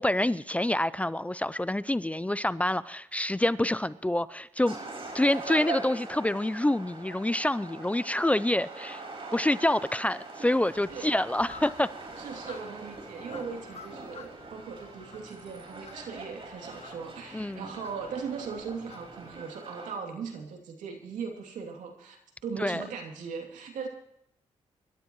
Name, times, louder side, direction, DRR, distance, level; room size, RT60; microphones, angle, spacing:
voice 1, 0.0-4.8 5.1-9.0 9.3-11.9 17.3-17.7 22.6-22.8, left 1 dB, 10° left, 0.5 m, -27 dB
sound 1, 4.7-19.9, right 3 dB, 50° right, 4.8 m, -42 dB
sound 2, 10.6-19.4, left 5 dB, 55° left, 1.7 m, -52 dB
voice 2, 12.2-23.9, right 5 dB, 85° right, 2.8 m, -39 dB
25.0 x 12.5 x 3.1 m
cardioid pair, 70°, 13 cm